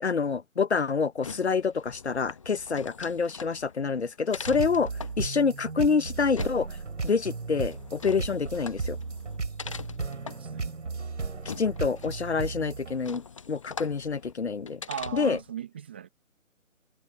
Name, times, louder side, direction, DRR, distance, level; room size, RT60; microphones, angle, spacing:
voice 1, 0.0-4.9 5.2-6.7 7.0-9.0 11.6-14.8 15.1-15.4, left 5 dB, 50° left, 0.9 m, -27 dB
sound 1, 1.0-15.5, left 5 dB, 25° left, 1.0 m, -43 dB
sound 2, 4.3-13.0, right 4 dB, 60° right, 6.3 m, -35 dB
voice 2, 10.1-10.8 14.9-16.1, right 9 dB, 10° right, 0.9 m, -38 dB
figure-of-eight pair, 155°, 41 cm